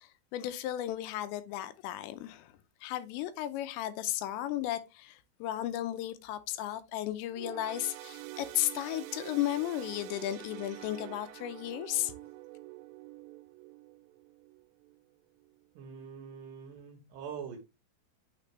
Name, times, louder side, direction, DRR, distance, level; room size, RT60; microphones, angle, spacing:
voice 1, 0.0-2.5 2.8-12.1, left 13 dB, 90° left, 2.9 m, -34 dB
sound 1, 7.3-15.0 15.4-15.6 16.5-16.6, right 18 dB, 85° right, 2.7 m, -47 dB
voice 2, 15.7-17.6, right 7 dB, 70° right, 2.3 m, -44 dB
8.4 x 4.2 x 3.1 m
omnidirectional pair, 5.0 m